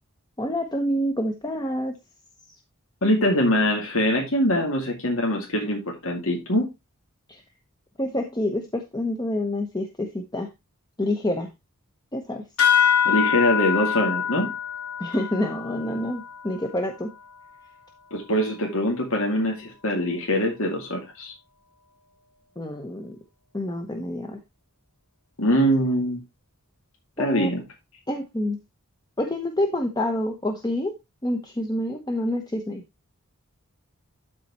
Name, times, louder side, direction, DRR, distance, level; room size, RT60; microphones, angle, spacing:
voice 1, 0.4-2.0 7.3-7.4 8.0-10.5 11.0-11.5 12.1-12.4 15.0-17.1 22.6-23.2 23.5-24.4 27.2-27.5 28.1-28.6 29.2-30.9 31.2-32.8, left 1 dB, 20° left, 4 dB, 1.0 m, -27 dB
voice 2, 3.0-6.7 13.0-14.5 18.1-21.3 25.4-26.2 27.2-27.6, equal, 65° left, 0 dB, 2.3 m, -23 dB
sound 1, 12.6-17.5, left 8 dB, 90° left, 3.2 m, -25 dB
12.5 x 4.2 x 4.2 m, 0.23 s
head